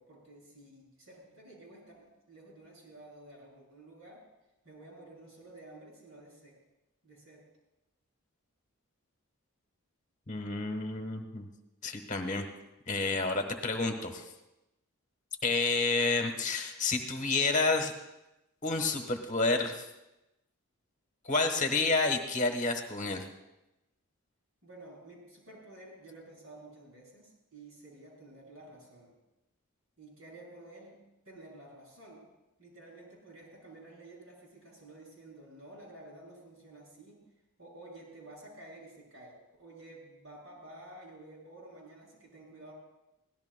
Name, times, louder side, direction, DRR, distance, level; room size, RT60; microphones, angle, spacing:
voice 1, 0.0-4.2 4.6-6.6 7.0-7.4 24.6-29.1 30.0-31.0 31.3-32.2 32.6-37.2 37.6-42.7, right 2 dB, 65° right, -3 dB, 6.9 m, -52 dB
voice 2, 10.3-11.5 11.8-12.4 12.9-14.2 15.4-17.9 18.6-19.8 21.2-23.2, left 3 dB, 35° left, 5 dB, 1.1 m, -29 dB
24.0 x 17.0 x 2.2 m, 0.96 s
head